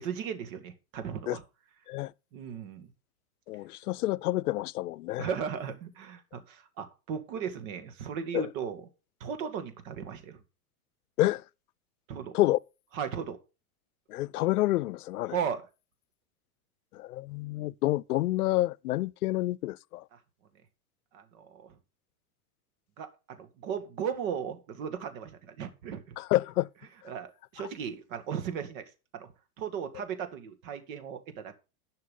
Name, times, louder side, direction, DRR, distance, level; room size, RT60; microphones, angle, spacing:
voice 1, 0.0-1.4 2.3-2.9 5.2-8.9 9.2-10.4 12.1-12.3 12.9-13.4 15.3-15.6 20.1-20.2 21.1-21.8 23.0-26.2 27.1-28.8 29.1-29.3 29.6-31.5, right 7 dB, 60° right, 2.1 m, -36 dB
voice 2, 3.5-5.3 8.3-8.5 11.2-11.4 12.3-12.6 14.1-15.4 16.9-20.0 26.2-26.7 27.0-27.1, left 16 dB, 90° left, 0.6 m, -28 dB
11.0 x 5.9 x 5.3 m
supercardioid pair, 125°, 44 cm